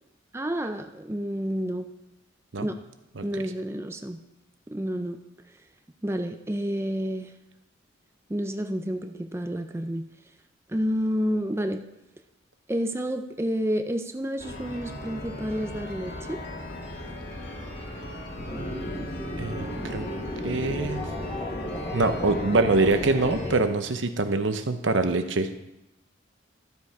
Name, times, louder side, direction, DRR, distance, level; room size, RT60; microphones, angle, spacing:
voice 1, 0.3-1.9 2.6-2.8 3.2-4.2 4.7-5.2 6.0-7.3 8.3-10.1 10.7-11.8 12.7-16.4, equal, 15° right, 6 dB, 0.5 m, -29 dB
sound 1, 14.4-23.6, left 1 dB, 60° left, 2.0 m, -37 dB
sound 2, 18.4-23.6, left 1 dB, 25° left, 1.9 m, -35 dB
voice 2, 19.4-20.1 20.4-21.0 21.9-25.5, right 3 dB, 80° right, 8 dB, 0.8 m, -24 dB
12.5 x 7.2 x 4.7 m, 0.92 s
head